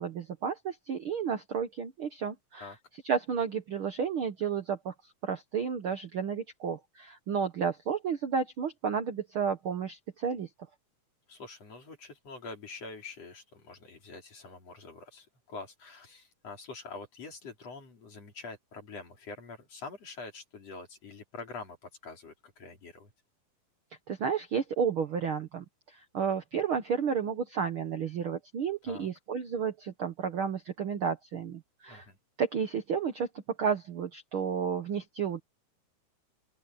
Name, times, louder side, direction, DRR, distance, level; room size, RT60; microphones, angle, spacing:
voice 1, 0.0-2.7 3.0-4.9 5.2-10.5 24.1-32.1 32.4-33.3 33.6-35.4, right 6 dB, 55° right, 1.5 m, -32 dB
voice 2, 11.3-23.1 28.9-29.1 31.9-32.2, left 3 dB, 50° left, 4.8 m, -45 dB
omnidirectional pair, 3.8 m